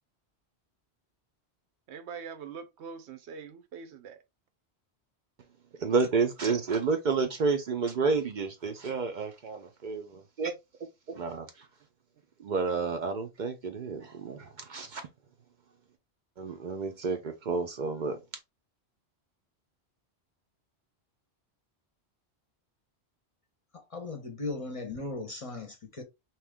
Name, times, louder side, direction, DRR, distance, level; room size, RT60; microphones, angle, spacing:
voice 1, 1.9-4.2 10.1-10.2, right 6 dB, 85° right, 0.9 m, -43 dB
voice 2, 5.8-10.5 11.1-11.7 12.4-15.0 16.4-18.2, right 4 dB, 55° right, 0.6 m, -30 dB
voice 3, 23.7-26.0, left 3 dB, 40° left, 0.6 m, -37 dB
2.8 x 2.3 x 3.4 m
omnidirectional pair, 1.1 m